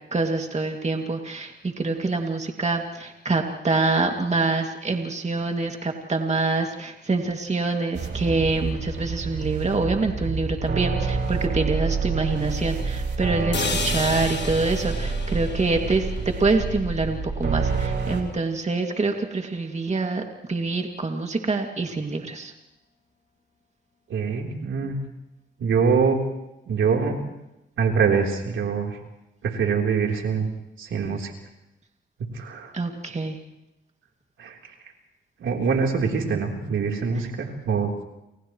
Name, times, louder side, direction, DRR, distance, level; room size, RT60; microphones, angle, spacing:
voice 1, 0.1-20.2 20.5-22.5 32.7-33.4 37.1-37.2, right 3 dB, 35° right, 3 dB, 2.5 m, -25 dB
sound 1, 7.9-18.2, right 4 dB, 60° right, 4.4 m, -28 dB
sound 2, 13.5-17.5, left 5 dB, 60° left, 3.0 m, -33 dB
voice 2, 24.1-25.0 25.6-26.3 26.7-27.2 27.8-29.0 29.4-30.5 30.8-31.3 32.3-32.7 34.4-34.6 35.4-38.0, right 5 dB, 80° right, 1 dB, 3.8 m, -24 dB
29.5 x 29.0 x 3.2 m, 0.90 s
cardioid pair, 60°, 20 cm